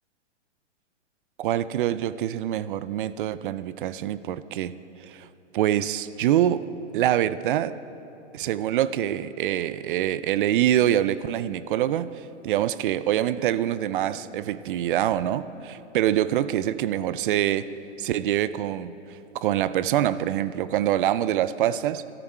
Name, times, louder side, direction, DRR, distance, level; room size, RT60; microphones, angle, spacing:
voice 1, 1.4-4.8 5.0-5.3 5.5-6.6 6.9-7.8 8.3-17.7 18.0-22.0, right 11 dB, 45° right, 15 dB, 0.5 m, -25 dB
23.0 x 13.0 x 4.4 m, 2.8 s
hypercardioid pair, 125°, 36 cm